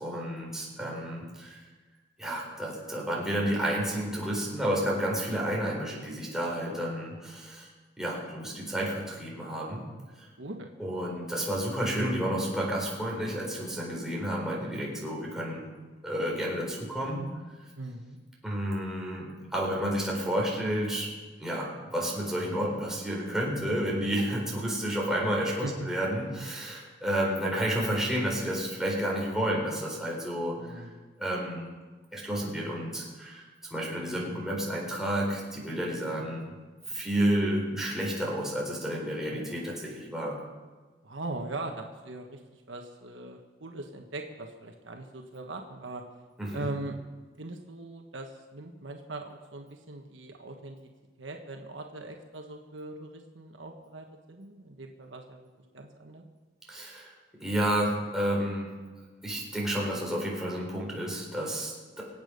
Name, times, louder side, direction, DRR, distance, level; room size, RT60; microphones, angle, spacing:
voice 1, 0.0-1.6 2.2-7.7 8.0-9.8 10.8-15.6 16.0-17.2 18.4-21.1 21.4-30.8 31.2-31.7 32.1-36.4 36.9-40.4 46.4-46.7 56.7-57.1 57.4-58.7 59.2-62.0, equal, 5° right, -4 dB, 4.3 m, -31 dB
voice 2, 0.8-1.3 10.4-10.7 17.8-18.2 25.6-25.9 30.6-31.0 34.1-34.4 39.2-39.5 41.0-46.0 46.5-47.0 47.4-50.9 51.2-55.5 55.7-56.2, right 2 dB, 70° right, 3 dB, 1.4 m, -41 dB
25.0 x 8.6 x 5.3 m, 1.3 s
head